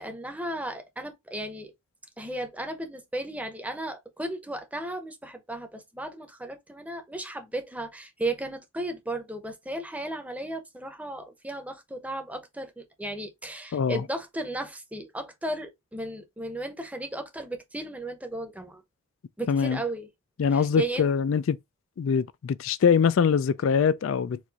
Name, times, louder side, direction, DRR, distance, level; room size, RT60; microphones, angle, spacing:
voice 1, 0.0-1.7 2.2-18.8 19.4-20.1 20.5-21.1, right 1 dB, 5° right, 0.8 m, -35 dB
voice 2, 19.5-19.8 20.4-21.6 22.0-24.4, left 6 dB, 70° left, 0.3 m, -23 dB
4.6 x 2.6 x 4.0 m
head